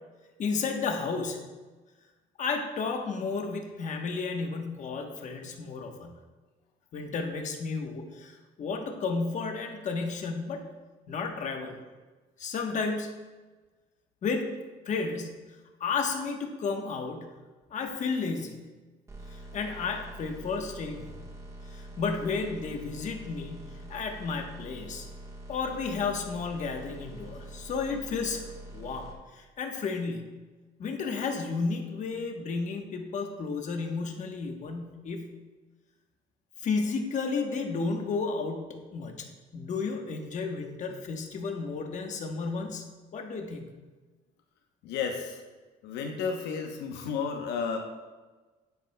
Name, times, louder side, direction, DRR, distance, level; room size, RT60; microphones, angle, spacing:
voice 1, 0.4-1.5 2.4-6.2 6.9-10.7 11.1-11.8 12.4-13.1 14.2-14.5 14.9-15.4 15.8-17.4 17.7-18.7 19.3-21.2 21.7-25.1 25.5-30.4 30.8-35.3 36.6-39.3 39.5-42.9 43.1-43.7, left 4 dB, 45° left, 3 dB, 1.1 m, -32 dB
sound 1, 19.1-29.1, right 1 dB, 20° right, 1.3 m, -45 dB
voice 2, 44.8-45.4 45.8-47.8, left 6 dB, 90° left, 3 dB, 0.9 m, -32 dB
10.5 x 8.0 x 2.2 m, 1.3 s
cardioid pair, 110°, 17 cm